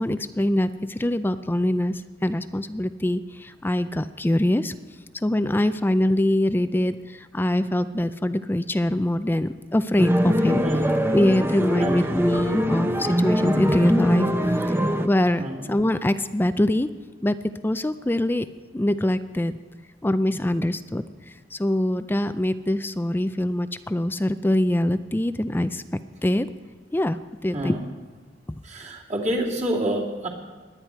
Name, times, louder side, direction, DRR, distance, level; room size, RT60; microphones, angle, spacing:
voice 1, 0.0-4.7 5.2-10.6 11.1-14.3 15.0-15.4 15.7-16.9 17.2-17.4 17.6-18.5 18.7-19.5 20.0-21.0 21.5-25.8 26.2-26.5 26.9-27.8, left 1 dB, 10° left, 12 dB, 0.4 m, -23 dB
sound 1, 10.0-15.1, equal, 15° right, 0.7 m, -23 dB
voice 2, 11.8-12.1 15.4-15.7 27.5-27.8 28.6-30.3, right 1 dB, 40° right, -2 dB, 2.5 m, -28 dB
21.0 x 9.7 x 4.5 m, 1.5 s
head